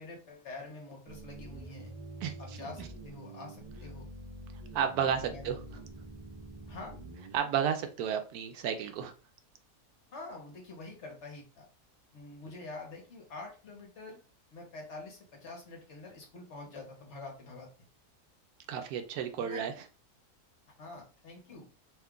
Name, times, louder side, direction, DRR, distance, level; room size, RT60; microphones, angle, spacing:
voice 1, 0.0-1.9 2.4-4.1 5.3-5.8 6.7-6.9 10.1-11.7 12.1-14.2 14.5-17.7 19.4-19.7 20.7-21.7, left 3 dB, 55° left, 1 dB, 1.1 m, -46 dB
sound 1, 1.1-7.4, right 1 dB, 50° right, 0.4 m, -46 dB
voice 2, 4.7-5.6 7.3-9.1 18.7-19.7, right 8 dB, 80° right, 7 dB, 1.0 m, -32 dB
2.9 x 2.3 x 3.6 m, 0.34 s
omnidirectional pair, 1.6 m